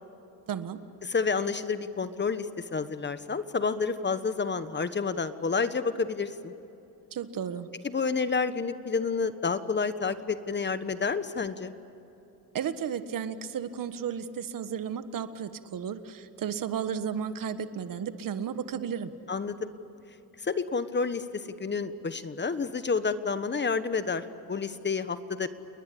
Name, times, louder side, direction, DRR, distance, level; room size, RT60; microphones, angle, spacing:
voice 1, 0.5-0.8 7.1-7.7 12.5-19.1, right 8 dB, 60° right, 11 dB, 1.5 m, -33 dB
voice 2, 1.0-6.5 7.8-11.7 19.3-19.7 20.4-25.5, left 5 dB, 30° left, 12 dB, 1.3 m, -29 dB
29.0 x 21.0 x 8.6 m, 3.0 s
cardioid pair, 95°, 37 cm